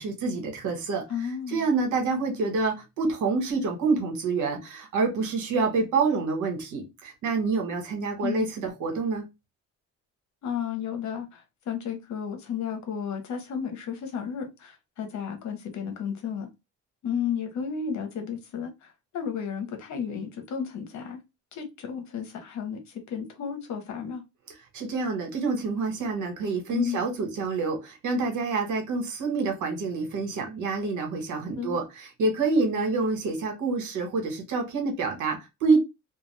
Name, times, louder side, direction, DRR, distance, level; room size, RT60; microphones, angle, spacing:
voice 1, 0.0-1.1 1.5-9.3 24.7-35.8, right 4 dB, 80° right, 1.3 m, -27 dB
voice 2, 1.1-1.7 8.2-8.5 10.4-16.5 17.0-21.2 21.5-24.2 26.7-27.0 31.5-31.8, left 7 dB, 70° left, 1.0 m, -33 dB
2.4 x 2.4 x 3.2 m
cardioid pair, 90°, 30 cm